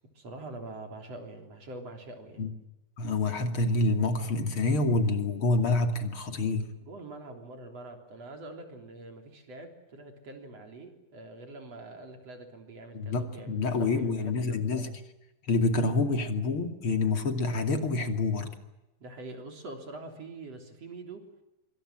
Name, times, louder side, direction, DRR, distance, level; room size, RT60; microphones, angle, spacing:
voice 1, 0.1-2.4 6.8-14.6 19.0-21.3, right 2 dB, 45° right, 4 dB, 4.4 m, -44 dB
voice 2, 3.0-6.7 12.9-14.9 15.5-18.5, left 3 dB, 40° left, 6 dB, 3.0 m, -27 dB
25.5 x 25.5 x 7.7 m, 0.94 s
omnidirectional pair, 4.2 m